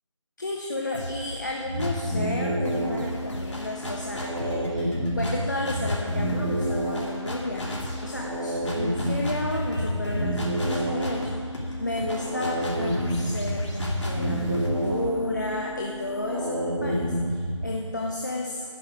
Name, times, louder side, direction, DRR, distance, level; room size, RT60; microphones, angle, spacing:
voice 1, 0.4-18.6, left 2 dB, 35° left, -1 dB, 0.8 m, -32 dB
sound 1, 0.9-2.2 2.6-16.3, equal, 65° left, 2.8 m, -36 dB
sound 2, 1.6-17.7, equal, 85° right, 2.7 m, -29 dB
10.0 x 5.6 x 8.6 m, 2.2 s
figure-of-eight pair, 180°, 16 cm